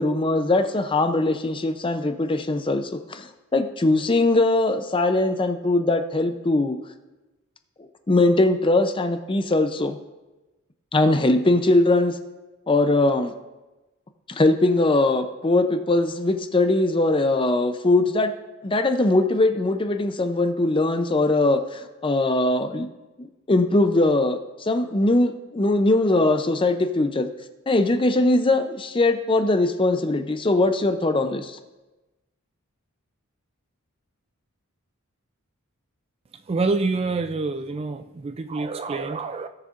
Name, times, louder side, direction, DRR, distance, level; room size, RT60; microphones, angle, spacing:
voice 1, 0.0-6.8 8.1-10.0 10.9-12.2 12.7-13.3 14.3-18.3 18.6-22.9 23.2-27.3 27.7-31.6, left 2 dB, 25° left, 0.5 m, -21 dB
voice 2, 36.5-39.5, right 3 dB, 25° right, 0.3 m, -26 dB
17.5 x 6.6 x 2.5 m
head